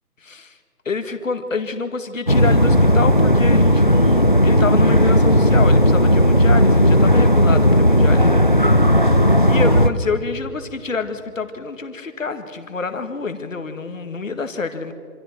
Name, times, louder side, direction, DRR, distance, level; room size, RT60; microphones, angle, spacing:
voice 1, 0.2-0.6 0.9-8.4 8.7-9.1 9.5-14.9, left 4 dB, 55° left, 8 dB, 1.9 m, -27 dB
sound 1, 2.3-9.9, equal, 35° left, 0.6 m, -14 dB
26.5 x 26.0 x 4.5 m, 2.2 s
figure-of-eight pair, 170°, 46 cm